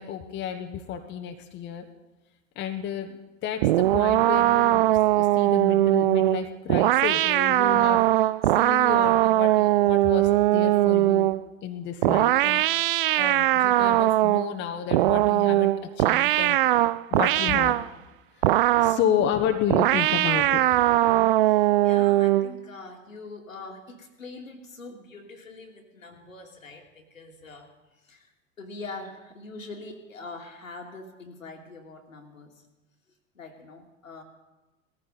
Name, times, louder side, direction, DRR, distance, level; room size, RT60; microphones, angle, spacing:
voice 1, 0.0-1.9 2.5-8.3 8.6-11.3 11.6-16.6 17.1-17.8 18.4-18.5 18.8-20.8, left 9 dB, 25° left, 5 dB, 1.1 m, -31 dB
sound 1, 3.6-11.4 12.0-14.5 14.9-17.9 18.4-19.1 19.7-22.5, right 16 dB, 45° right, 0.4 m, -21 dB
voice 2, 21.4-28.3 28.6-32.7 33.3-34.2, left 3 dB, 80° left, 3 dB, 2.3 m, -43 dB
18.5 x 14.5 x 4.1 m, 1.1 s
figure-of-eight pair, 90°, 40 cm